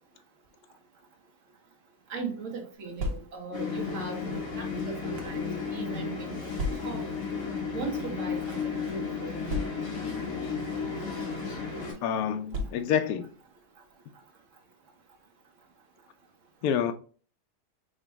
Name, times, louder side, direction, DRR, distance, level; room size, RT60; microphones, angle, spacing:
voice 1, 2.1-5.4 5.7-6.5 6.8-7.1 7.7-9.4, right 4 dB, 50° right, 1.3 m, -38 dB
sound 1, 2.7-3.6 4.4-5.4 6.5-7.2 8.0-8.2 8.5-8.6 9.5-10.1 11.0-11.2 12.5-13.1, left 1 dB, 85° right, 1.4 m, -35 dB
sound 2, 3.5-11.9, left 5 dB, 55° left, 1.9 m, -33 dB
voice 2, 12.0-13.3 16.6-16.9, left 8 dB, 70° left, 1.0 m, -27 dB
5.1 x 3.0 x 3.4 m
omnidirectional pair, 1.8 m